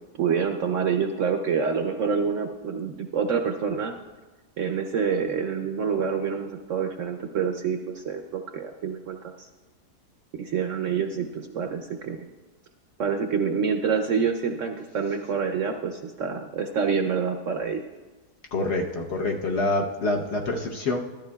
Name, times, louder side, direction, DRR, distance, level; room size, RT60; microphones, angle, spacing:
voice 1, 0.2-3.9 4.6-9.5 10.4-12.3 13.0-17.8, right 6 dB, 65° right, 4 dB, 0.8 m, -27 dB
voice 2, 18.5-21.0, left 2 dB, 50° left, 1 dB, 0.9 m, -26 dB
14.0 x 12.5 x 2.3 m, 1.2 s
omnidirectional pair, 1.7 m